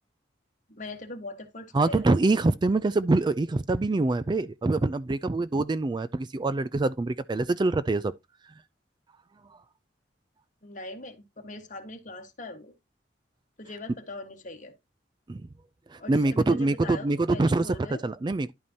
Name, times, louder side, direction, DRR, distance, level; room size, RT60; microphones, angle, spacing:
voice 1, 0.7-2.0 10.6-12.7 13.6-14.7 16.0-18.0, left 2 dB, 45° left, 1.5 m, -41 dB
voice 2, 1.7-8.1 15.3-15.4 15.9-18.5, right 2 dB, 25° right, 0.3 m, -25 dB
11.0 x 5.3 x 2.8 m
head